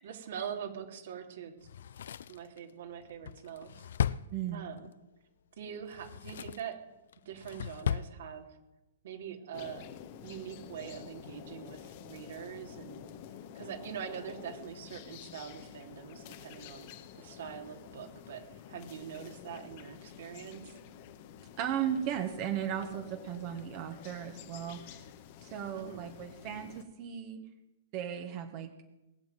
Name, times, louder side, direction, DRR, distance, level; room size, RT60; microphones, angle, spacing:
voice 1, 0.0-1.5 2.3-3.7 4.5-4.9 5.6-6.8 7.2-8.5 9.0-9.8 10.2-13.1 13.6-18.4 18.7-20.7 25.7-26.1, right 8 dB, 65° right, 4 dB, 3.0 m, -43 dB
Drawer open or close, 1.6-4.9 5.8-6.7 7.1-8.1 8.4-8.5, left 9 dB, 70° left, 0.5 m, -36 dB
voice 2, 4.3-4.7 21.6-25.1 25.4-27.4 27.9-28.7, right 9 dB, 40° right, 5 dB, 1.7 m, -36 dB
sound 1, 9.5-26.8, left 9 dB, 45° left, 1.5 m, -49 dB
20.5 x 7.2 x 9.4 m, 1.0 s
hypercardioid pair, 145°, 0 cm